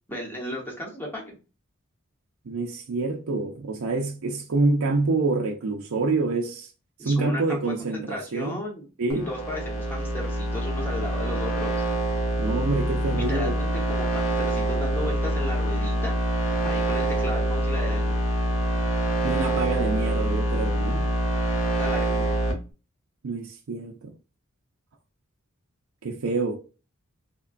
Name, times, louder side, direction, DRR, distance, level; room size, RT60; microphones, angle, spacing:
voice 1, 0.1-1.4 7.0-8.9 9.3-11.8 13.1-16.2 16.6-18.2 21.8-22.4, left 1 dB, 10° left, 1.0 m, -35 dB
voice 2, 2.5-6.7 7.0-8.6 9.0-9.3 12.4-13.5 19.2-21.1 23.2-24.1 26.0-26.6, right 3 dB, 70° right, 0.5 m, -27 dB
sound 1, 9.1-22.5, right 1 dB, 70° left, 1.0 m, -25 dB
3.5 x 2.2 x 2.4 m
head